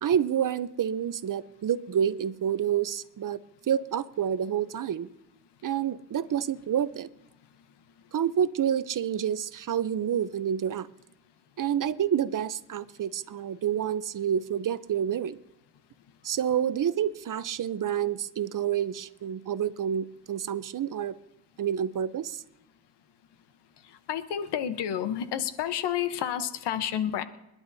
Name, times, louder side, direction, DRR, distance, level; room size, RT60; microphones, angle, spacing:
voice 1, 0.0-3.4 3.7-5.1 5.6-7.1 8.1-10.9 11.6-15.4 16.2-21.1 21.6-22.4, right 9 dB, 50° right, 14 dB, 0.7 m, -28 dB
voice 2, 24.1-27.2, left 10 dB, 90° left, 11 dB, 1.0 m, -30 dB
28.5 x 11.0 x 2.7 m, 0.93 s
cardioid pair, 70°, 40 cm